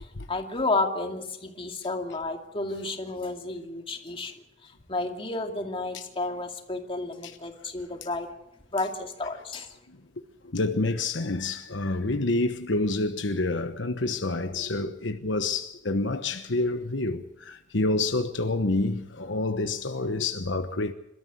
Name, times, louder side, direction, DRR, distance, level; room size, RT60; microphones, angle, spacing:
voice 1, 0.3-4.3 4.9-8.3 8.7-9.7, left 2 dB, 30° left, 2.5 m, -31 dB
voice 2, 10.4-20.9, left 2 dB, 80° left, 1.1 m, -28 dB
27.0 x 13.5 x 8.1 m
head